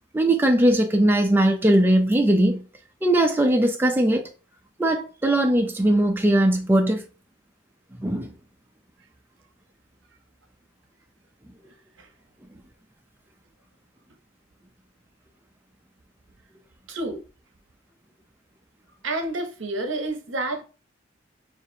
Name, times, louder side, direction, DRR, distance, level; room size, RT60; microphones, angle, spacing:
voice 1, 0.1-2.6 3.0-4.2 4.8-7.0 8.0-8.3, right 1 dB, 10° right, 0.4 m, -20 dB
voice 2, 16.9-17.2 19.0-20.6, right 2 dB, 75° right, 0.8 m, -29 dB
6.4 x 2.5 x 2.7 m
head